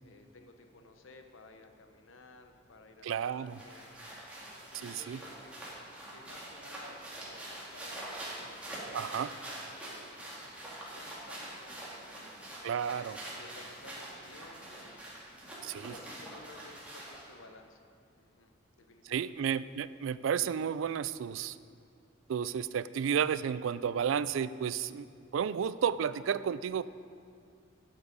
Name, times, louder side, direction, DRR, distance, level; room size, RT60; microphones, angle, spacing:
voice 1, 0.0-3.9 4.6-5.5 6.1-12.4 13.3-15.2 15.5-19.4, left 2 dB, 80° left, 6 dB, 0.9 m, -56 dB
voice 2, 3.0-3.6 4.8-5.2 8.9-9.3 12.6-13.2 15.7-15.9 19.1-21.6 22.3-25.1 25.3-26.8, right 7 dB, 80° right, 16 dB, 0.3 m, -32 dB
sound 1, 3.2-17.3, right 1 dB, 5° right, 2.2 m, -45 dB
12.5 x 7.5 x 5.1 m, 2.3 s
head